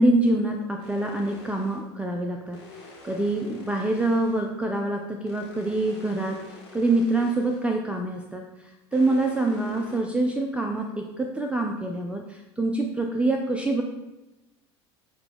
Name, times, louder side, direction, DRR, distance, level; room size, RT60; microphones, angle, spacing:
voice 1, 0.0-2.6 3.0-6.5 6.7-8.4 8.9-13.8, right 2 dB, 10° right, 2 dB, 0.4 m, -25 dB
sound 1, 0.8-1.9 2.5-4.5 5.2-7.7 8.9-10.0, left 3 dB, 90° left, 1.3 m, -46 dB
5.8 x 2.2 x 3.4 m, 1.0 s
hypercardioid pair, 80°, 14 cm